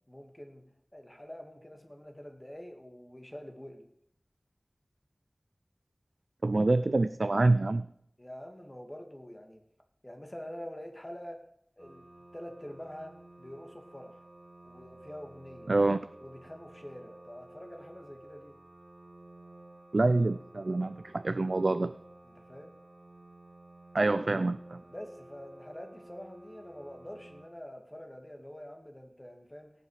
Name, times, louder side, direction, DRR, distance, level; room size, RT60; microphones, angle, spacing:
voice 1, 0.1-0.7 0.9-3.9 8.2-9.6 10.0-11.4 11.8-14.2 14.6-15.7 16.2-18.6 22.2-22.7 24.9-29.7, equal, 25° left, 4 dB, 2.2 m, -46 dB
voice 2, 6.4-7.9 15.7-16.0 19.9-21.9 23.9-24.8, right 2 dB, 75° right, 12 dB, 0.4 m, -26 dB
sound 1, 11.8-27.5, right 1 dB, 55° right, 2.3 m, -53 dB
17.5 x 7.7 x 5.0 m, 0.70 s
wide cardioid pair, 50°, 0 cm